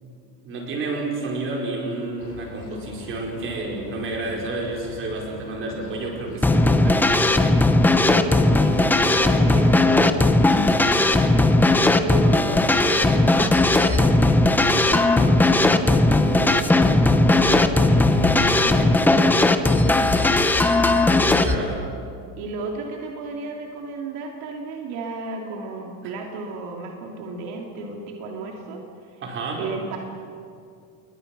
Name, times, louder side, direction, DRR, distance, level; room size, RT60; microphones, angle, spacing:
voice 1, 0.4-7.1 21.4-21.7 29.2-29.6, right 2 dB, 30° right, -1 dB, 5.0 m, -30 dB
sound 1, 2.2-18.5, left 4 dB, 75° left, 6.5 m, -37 dB
sound 2, 6.4-21.6, left 2 dB, 5° left, 0.6 m, -17 dB
voice 2, 7.8-10.2 11.2-11.5 11.9-20.2 22.4-29.2 29.6-30.0, right 3 dB, 65° right, 1 dB, 2.8 m, -34 dB
28.5 x 22.5 x 6.1 m, 2.4 s
cardioid pair, 170°, 40 cm